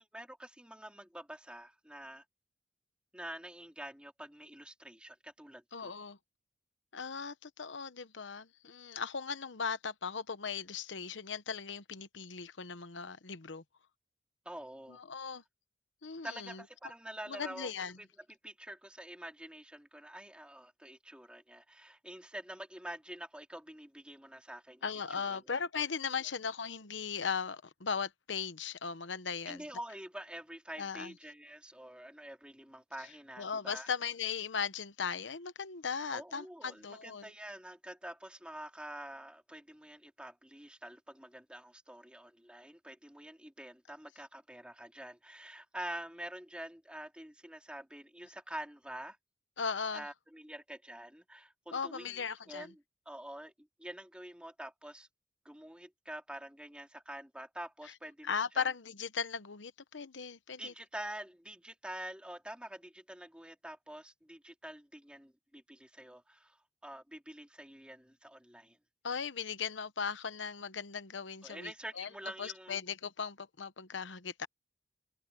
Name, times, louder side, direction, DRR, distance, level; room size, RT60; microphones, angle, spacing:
voice 1, 0.1-2.2 3.1-5.9 14.5-15.0 16.2-17.7 18.0-18.1 18.4-24.9 25.2-25.4 26.2-26.3 29.5-33.9 36.1-49.2 49.9-52.8 53.1-55.1 55.5-58.7 60.6-66.6 66.8-68.8 71.4-72.8, right 1 dB, 5° right, 3.6 m, -47 dB
voice 2, 5.7-6.2 6.9-13.6 14.9-15.4 16.0-16.6 17.3-18.0 24.8-29.8 30.8-31.1 33.4-37.3 49.6-50.1 51.7-52.7 58.2-60.7 69.0-72.1 72.4-74.5, left 6 dB, 90° left, 1.0 m, -38 dB
head